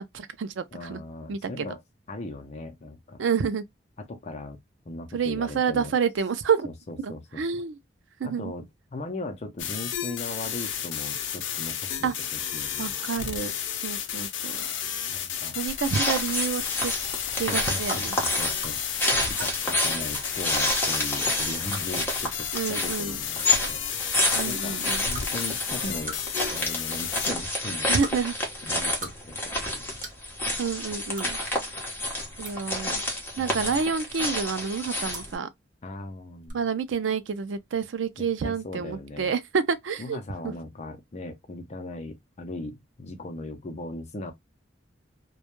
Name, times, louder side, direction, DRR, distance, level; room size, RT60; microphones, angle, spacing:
voice 1, 0.0-1.0 1.3-1.7 3.2-3.6 5.1-6.7 7.0-7.8 8.2-8.5 12.0-12.1 12.8-14.7 15.5-16.9 17.4-18.2 22.5-23.2 24.4-25.1 27.9-28.3 30.6-31.4 32.4-33.0 33.4-35.5 36.5-40.2 40.4-40.5, right 6 dB, 90° right, 0.4 m, -28 dB
voice 2, 0.7-1.8 2.1-3.2 4.1-4.6 4.9-5.9 6.9-7.4 8.2-13.0 15.1-15.6 17.3-18.8 19.3-23.8 24.5-24.8 25.1-26.2 26.5-27.9 28.6-30.0 33.4-33.6 35.8-36.6 38.2-39.3 40.0-44.3, left 2 dB, 35° left, 0.5 m, -38 dB
sound 1, 9.6-27.3, left 9 dB, 90° left, 0.5 m, -32 dB
sound 2, 15.7-35.4, left 1 dB, 10° left, 0.8 m, -29 dB
sound 3, 17.9-18.0 18.6-18.8 19.3-19.5 20.1-20.3 20.9-21.0 21.7-21.9 22.5-22.6 22.9-23.0 23.4-23.6 24.3-24.4 25.1-25.3 26.1-26.4 26.7-27.0 28.0-28.1 28.8-29.1 29.4-29.5 30.0-30.2 31.1-31.3 32.1-32.5 33.7-34.0 35.1-35.3 36.4-36.5, right 2 dB, 50° right, 0.9 m, -39 dB
2.2 x 2.1 x 2.9 m
head